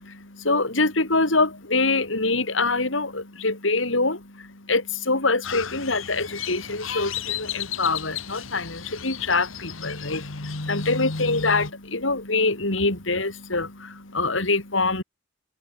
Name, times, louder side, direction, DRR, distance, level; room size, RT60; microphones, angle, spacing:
voice 1, 0.0-15.0, left 3 dB, 70° left, 4.2 m, -25 dB
Crow, 5.4-11.7, left 6 dB, 85° left, 1.8 m, -33 dB
open air
head